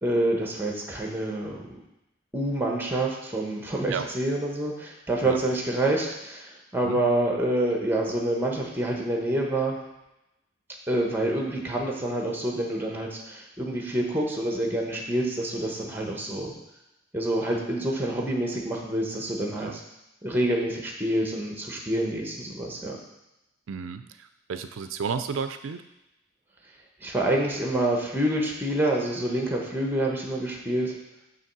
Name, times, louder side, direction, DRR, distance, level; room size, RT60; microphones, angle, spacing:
voice 1, 0.0-1.6 2.3-9.8 10.9-16.5 17.1-19.8 20.2-23.0 27.0-31.0, right 1 dB, 10° right, 0 dB, 1.1 m, -27 dB
voice 2, 23.7-24.0 24.5-25.8, right 6 dB, 90° right, 9 dB, 0.4 m, -31 dB
7.2 x 3.1 x 6.0 m, 0.93 s
head